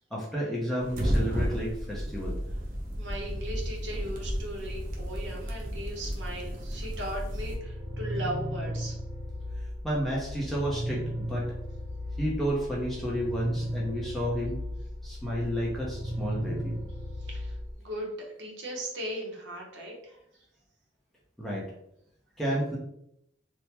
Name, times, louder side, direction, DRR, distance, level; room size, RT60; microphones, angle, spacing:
voice 1, 0.1-2.4 9.8-11.5 12.2-14.6 15.0-16.8 21.4-21.7 22.4-22.8, equal, ahead, -6 dB, 0.6 m, -31 dB
sound 1, 0.8-7.6, equal, 40° right, 0.5 m, -33 dB
voice 2, 3.0-8.9 17.2-18.1 18.4-20.1, right 1 dB, 65° right, -1 dB, 0.9 m, -38 dB
sound 2, 7.1-17.7, equal, 60° left, 1.3 m, -36 dB
3.3 x 2.1 x 2.9 m, 0.76 s
head